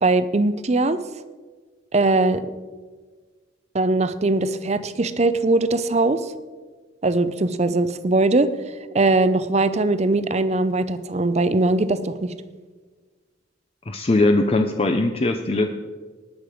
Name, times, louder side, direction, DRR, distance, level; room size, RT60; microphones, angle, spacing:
voice 1, 0.0-1.0 1.9-2.4 3.7-6.3 7.0-12.3, right 2 dB, 35° right, 13 dB, 0.6 m, -21 dB
voice 2, 13.9-15.7, left 2 dB, 30° left, 5 dB, 0.6 m, -20 dB
19.5 x 6.6 x 5.0 m, 1.4 s
head